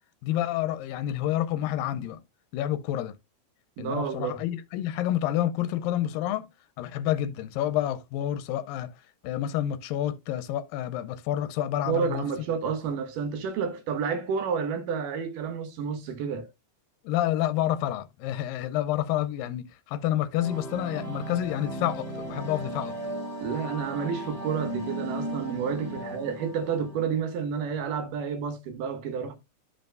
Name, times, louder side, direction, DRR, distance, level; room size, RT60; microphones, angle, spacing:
voice 1, 0.2-2.2 2.5-3.1 3.8-6.5 6.8-8.9 9.2-12.2 17.0-22.9 26.0-26.1, left 12 dB, 90° left, 2.4 m, -29 dB
voice 2, 3.8-4.4 11.9-16.5 23.4-29.4, right 6 dB, 70° right, 2.8 m, -30 dB
sound 1, 20.4-27.3, right 1 dB, 10° right, 2.4 m, -36 dB
13.0 x 5.3 x 2.2 m
omnidirectional pair, 4.0 m